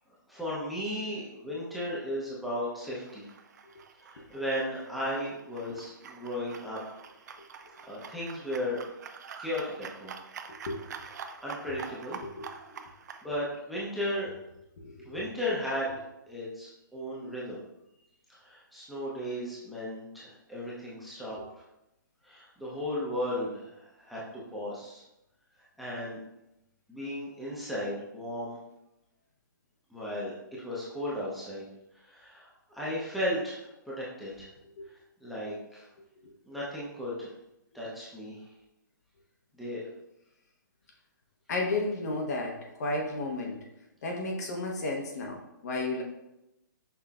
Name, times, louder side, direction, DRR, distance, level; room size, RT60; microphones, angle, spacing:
voice 1, 0.3-3.3 4.0-6.8 7.8-8.8 9.4-10.1 11.4-12.2 13.2-14.3 15.1-16.0 16.3-17.6 18.4-21.6 22.2-25.0 25.8-26.2 26.9-28.6 29.9-30.3 30.6-31.7 32.0-34.5 35.2-35.9 36.5-37.3 37.7-38.4 39.5-39.9, left 1 dB, ahead, -8 dB, 0.7 m, -35 dB
sound 1, 2.8-13.2, right 6 dB, 55° right, 0.4 m, -46 dB
voice 2, 12.2-12.9 14.8-15.2 34.8-34.9 35.4-35.5 36.2-36.3 41.5-43.7 44.0-46.0, left 2 dB, 50° left, 1 dB, 0.8 m, -33 dB
5.7 x 3.2 x 2.4 m, 0.89 s
hypercardioid pair, 155°, 11 cm